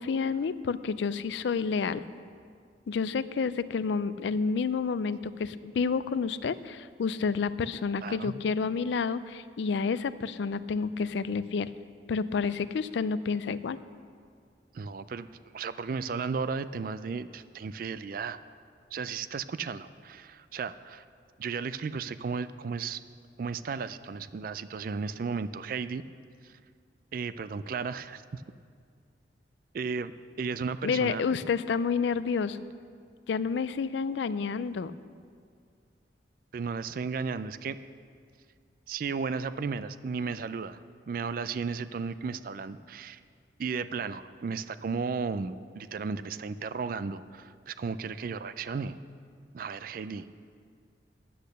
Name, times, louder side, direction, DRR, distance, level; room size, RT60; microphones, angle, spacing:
voice 1, 0.0-2.0 2.9-11.7 12.1-13.8 30.8-32.6 33.3-34.9, left 5 dB, 75° left, 15 dB, 0.4 m, -29 dB
voice 2, 8.0-8.3 14.7-15.3 15.5-18.4 18.9-21.0 21.4-23.0 23.4-26.0 26.4-26.5 27.1-28.4 29.7-30.1 30.4-31.2 36.5-37.8 38.9-40.8 41.1-43.2 43.6-49.0 49.5-50.4, right 5 dB, 50° right, 14 dB, 0.3 m, -34 dB
10.0 x 8.4 x 6.6 m, 2.1 s
head